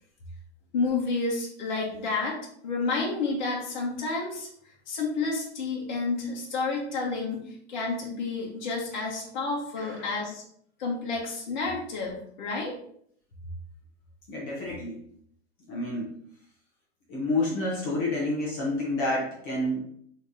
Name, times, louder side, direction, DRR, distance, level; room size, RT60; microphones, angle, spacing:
voice 1, 0.7-2.4 2.6-4.5 4.9-7.4 7.7-10.4 10.8-12.7, left 3 dB, 40° left, -3 dB, 1.4 m, -30 dB
voice 2, 9.8-10.1 14.3-15.0 15.7-16.1 17.1-19.8, left 2 dB, 20° left, -5 dB, 0.9 m, -29 dB
5.7 x 3.2 x 2.7 m, 0.65 s
hypercardioid pair, 175°, 34 cm